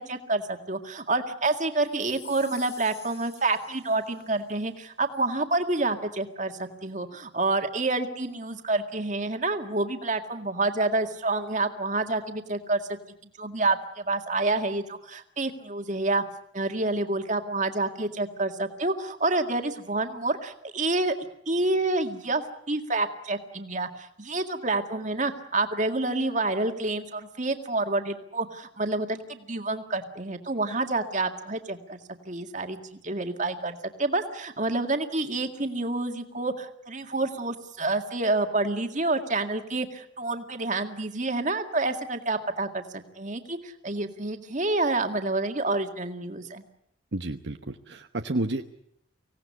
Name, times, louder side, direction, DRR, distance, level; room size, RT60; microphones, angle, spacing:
voice 1, 0.0-12.8 13.4-16.2 16.5-21.1 21.5-22.4 22.7-32.0 32.3-42.8 43.2-46.6, right 2 dB, 40° right, 6 dB, 2.0 m, -28 dB
sound 1, 1.9-4.4, left 8 dB, 30° left, 4.6 m, -49 dB
voice 2, 47.1-48.6, right 2 dB, 65° right, 6 dB, 1.1 m, -30 dB
25.0 x 17.5 x 9.7 m, 0.75 s
head